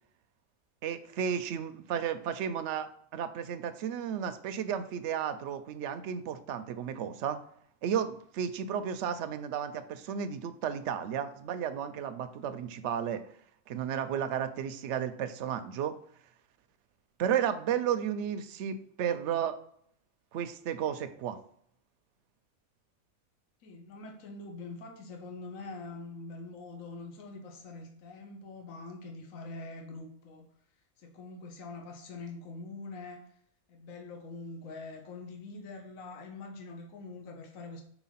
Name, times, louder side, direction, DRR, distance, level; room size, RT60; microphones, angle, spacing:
voice 1, 0.8-7.4 7.8-13.2 13.7-15.9 17.2-19.6 20.3-21.4, right 8 dB, 65° right, 10 dB, 0.8 m, -33 dB
voice 2, 23.6-30.5 31.0-33.2 33.7-37.8, left 3 dB, 65° left, 2 dB, 1.3 m, -44 dB
4.6 x 4.0 x 5.6 m, 0.65 s
omnidirectional pair, 1.5 m